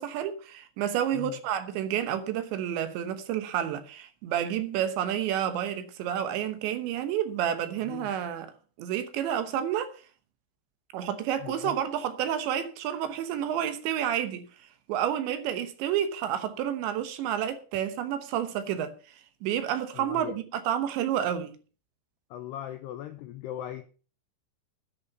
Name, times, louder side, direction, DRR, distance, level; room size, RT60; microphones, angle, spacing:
voice 1, 0.0-8.5 8.8-9.9 10.9-14.4 14.9-19.2 19.4-21.5, right 10 dB, 75° right, 3.1 m, -30 dB
voice 2, 11.4-11.8 19.9-20.3 22.3-23.8, left 12 dB, 90° left, 2.4 m, -39 dB
10.5 x 9.9 x 6.7 m
omnidirectional pair, 5.8 m